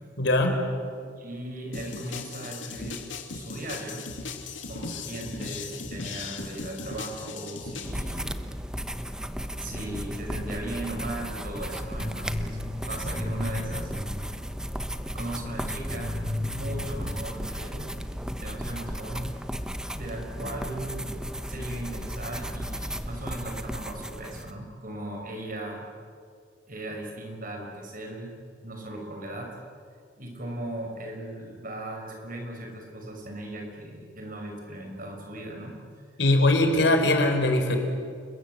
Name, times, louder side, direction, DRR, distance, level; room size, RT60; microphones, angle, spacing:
voice 1, 0.2-0.6 36.2-37.8, left 2 dB, 65° left, 5 dB, 4.2 m, -21 dB
voice 2, 1.2-4.1 4.7-8.4 9.6-12.6 12.9-13.9 15.1-16.2 16.5-17.9 18.3-19.3 19.9-21.2 21.5-25.9 26.7-28.4 28.6-29.6 30.2-35.8 36.6-36.7, right 1 dB, 45° right, 2 dB, 5.8 m, -37 dB
sound 1, 1.7-7.9, left 4 dB, 80° left, 2.7 m, -37 dB
sound 2, 7.8-24.5, equal, 5° right, 1.0 m, -35 dB
sound 3, 12.0-14.7 15.3-15.4 15.9-17.2, left 1 dB, 20° right, 2.9 m, -34 dB
29.5 x 21.5 x 7.8 m, 2.3 s
head